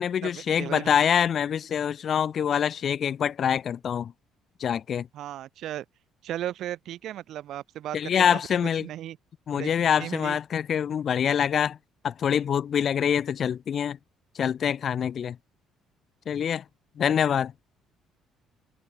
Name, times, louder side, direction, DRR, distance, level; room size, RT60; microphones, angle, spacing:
voice 1, 0.0-4.1 4.6-5.1 7.9-8.9 9.5-11.8 12.0-14.0 14.3-15.4 16.3-16.6 17.0-17.5, left 8 dB, 40° left, 1.5 m, -25 dB
voice 2, 0.6-1.0 5.1-5.8 6.2-9.2 9.5-9.7 10.0-10.4, right 12 dB, 60° right, 2.1 m, -36 dB
cardioid pair, 150°, 0 cm